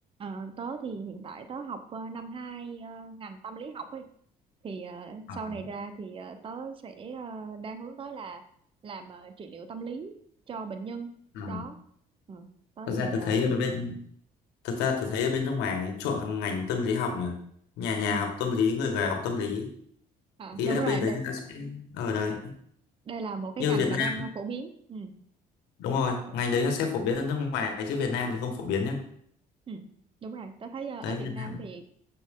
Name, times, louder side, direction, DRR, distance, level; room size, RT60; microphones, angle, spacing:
voice 1, 0.2-4.0 4.6-8.4 8.8-10.2 10.5-11.1 11.5-11.8 12.3-12.5 12.8-13.4 18.1-18.2 20.4-21.2 23.0-25.1 26.3-26.4 29.7-29.8 30.2-31.8, right 4 dB, 30° right, 7 dB, 0.8 m, -38 dB
voice 2, 12.9-14.0 14.6-17.3 17.8-19.7 20.6-22.5 23.6-24.1 25.8-29.0 31.0-31.6, left 5 dB, 90° left, 4 dB, 1.7 m, -28 dB
7.8 x 6.2 x 3.7 m, 0.65 s
cardioid pair, 110°, 17 cm